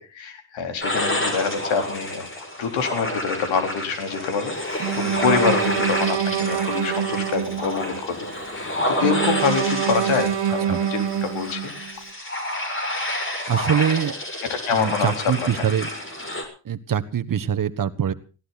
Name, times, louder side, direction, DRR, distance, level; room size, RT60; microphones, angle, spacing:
voice 1, 0.1-8.2 8.5-11.7 14.5-15.1 15.4-15.7, left 6 dB, 75° left, 6 dB, 4.1 m, -26 dB
sound 1, 0.8-16.4, left 1 dB, 25° left, 6.4 m, -29 dB
Bowed string instrument, 4.8-8.0 9.0-11.9, right 10 dB, 65° right, 1.6 m, -25 dB
voice 2, 13.5-14.1 14.8-15.9 16.6-18.1, right 8 dB, 45° right, 10 dB, 1.4 m, -23 dB
19.0 x 16.5 x 4.1 m, 0.35 s
supercardioid pair, 75°, 46 cm